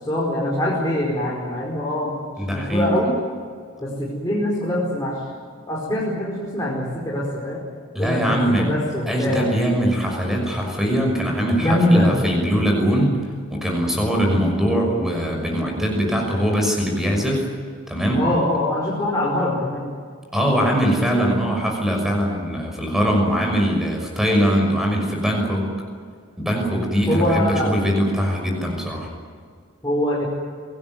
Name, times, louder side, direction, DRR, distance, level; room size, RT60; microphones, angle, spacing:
voice 1, 0.0-2.2 2.5-3.2 3.8-5.2 5.7-7.6 8.0-9.5 11.6-12.2 18.1-19.9 27.1-27.8 29.8-30.3, left 1 dB, 15° left, -5 dB, 4.9 m, -23 dB
voice 2, 2.4-2.9 7.9-8.7 9.1-13.2 13.5-17.5 17.9-18.2 20.3-25.7 26.4-29.1, equal, ahead, 1 dB, 6.0 m, -21 dB
26.5 x 18.5 x 9.4 m, 2.1 s
head